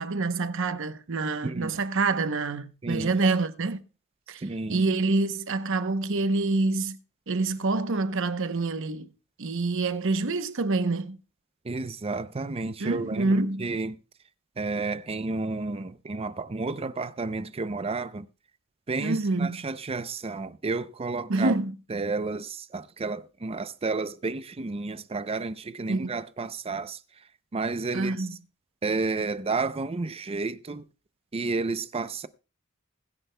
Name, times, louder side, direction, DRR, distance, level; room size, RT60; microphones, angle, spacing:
voice 1, 0.0-3.8 4.3-4.4 4.7-7.0 7.3-9.1 9.4-11.2 12.8-13.6 19.0-19.6 21.3-21.7 25.9-26.2 27.9-28.3, right 3 dB, 65° right, 0.8 m, -26 dB
voice 2, 2.8-3.2 4.4-4.9 11.6-14.0 14.6-18.3 18.9-21.5 21.9-27.0 27.5-28.3 28.8-30.9 31.3-32.3, right 3 dB, 30° right, 0.5 m, -31 dB
20.5 x 10.0 x 2.2 m
head